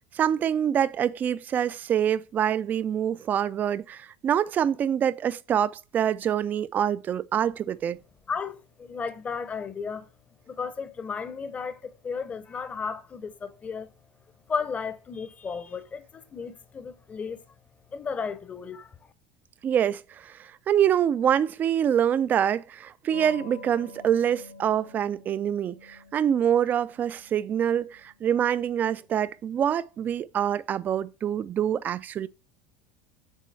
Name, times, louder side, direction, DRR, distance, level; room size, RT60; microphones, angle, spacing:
voice 1, 0.1-8.0 19.6-32.3, right 9 dB, 35° right, 0.3 m, -25 dB
voice 2, 8.3-10.1 10.5-13.9 14.5-17.4 17.9-18.9, left 5 dB, 25° left, 0.7 m, -34 dB
sound 1, 23.1-29.3, left 3 dB, 80° left, 1.5 m, -49 dB
6.3 x 3.7 x 4.1 m
hypercardioid pair, 80°, 5 cm